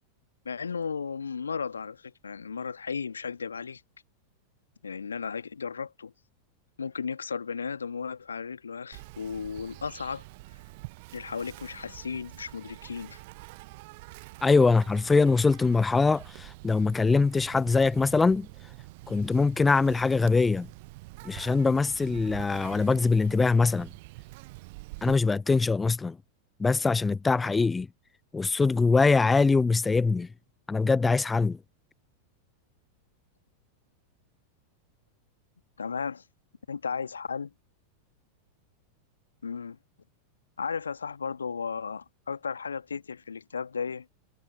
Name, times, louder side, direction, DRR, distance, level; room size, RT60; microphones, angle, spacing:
voice 1, 0.4-3.8 4.8-6.1 6.8-10.2 11.1-13.2 35.8-36.2 36.7-37.5 39.4-39.8 40.6-44.1, left 6 dB, 75° left, 1.7 m, -35 dB
Insect, 8.9-25.2, right 24 dB, 50° right, 0.7 m, -46 dB
voice 2, 14.4-18.5 19.1-20.7 21.2-23.9 25.0-26.2 26.6-27.9 28.3-30.3 30.7-31.6, left 4 dB, 10° left, 0.5 m, -23 dB
figure-of-eight pair, 90°, 0 cm